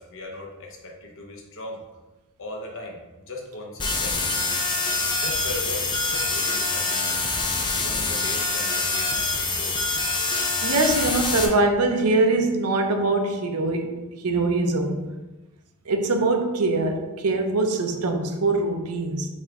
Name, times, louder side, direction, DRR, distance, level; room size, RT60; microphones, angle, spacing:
voice 1, 0.0-1.8 2.4-3.0 3.3-4.2 5.2-7.2 7.7-9.8, left 2 dB, 60° left, 0.8 m, -38 dB
sound 1, 3.8-11.5, left 3 dB, 20° left, 0.5 m, -25 dB
voice 2, 10.6-15.0 15.9-19.3, right 2 dB, 85° right, 0.6 m, -23 dB
4.3 x 3.4 x 3.6 m
head